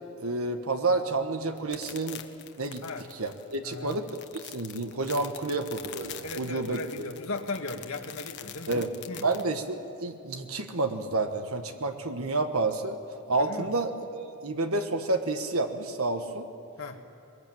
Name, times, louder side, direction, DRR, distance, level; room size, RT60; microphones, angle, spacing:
voice 1, 0.2-2.2 2.6-2.8 3.1-4.1 4.5-6.8 8.7-8.9 9.2-13.0 13.3-16.5, right 3 dB, 85° right, 6 dB, 1.4 m, -29 dB
sound 1, 1.6-9.4, left 10 dB, 55° left, 1.3 m, -44 dB
voice 2, 3.6-4.0 6.2-8.8 9.1-9.3 13.3-13.7 16.8-17.0, left 2 dB, 75° left, 3 dB, 1.9 m, -37 dB
23.0 x 22.0 x 8.8 m, 2.6 s
head